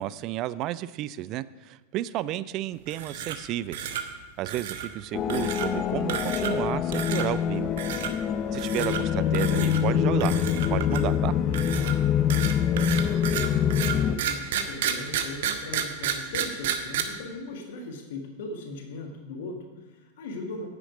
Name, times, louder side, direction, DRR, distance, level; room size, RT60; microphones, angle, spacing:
voice 1, 0.0-3.9 4.4-7.7 8.5-10.4 10.7-11.3, right 14 dB, 40° right, 18 dB, 0.3 m, -32 dB
sound 1, 2.9-3.5 3.7-4.0 4.5-4.9 5.3-5.7 6.1-6.6 6.9-7.3 7.8-8.1 8.5-9.0 9.3-9.8 10.2-11.1 11.5-17.0, right 9 dB, 55° right, 0.9 m, -31 dB
sound 2, 5.1-14.2, left 9 dB, 30° left, 0.4 m, -25 dB
voice 2, 12.6-13.3 13.7-20.7, left 2 dB, 55° left, 3 dB, 1.6 m, -39 dB
9.7 x 9.1 x 5.0 m, 1.3 s
figure-of-eight pair, 90°, 0 cm